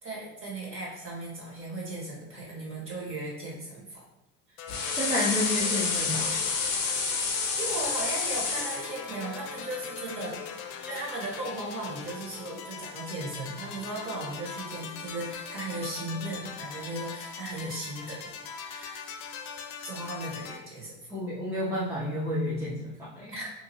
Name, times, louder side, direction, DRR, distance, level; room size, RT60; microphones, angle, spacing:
voice 1, 0.0-4.0 4.5-4.6 7.6-19.1 19.8-21.0 23.3-23.5, right 2 dB, 30° right, -4 dB, 1.3 m, -37 dB
sound 1, 4.6-20.6, left 6 dB, 80° left, 0.5 m, -41 dB
sound 2, 4.7-8.9, left 4 dB, 40° left, 0.7 m, -29 dB
voice 2, 5.0-6.4 21.1-23.3, left 1 dB, 5° right, -7 dB, 0.5 m, -30 dB
2.8 x 2.5 x 2.8 m, 0.95 s
supercardioid pair, 100°, 40 cm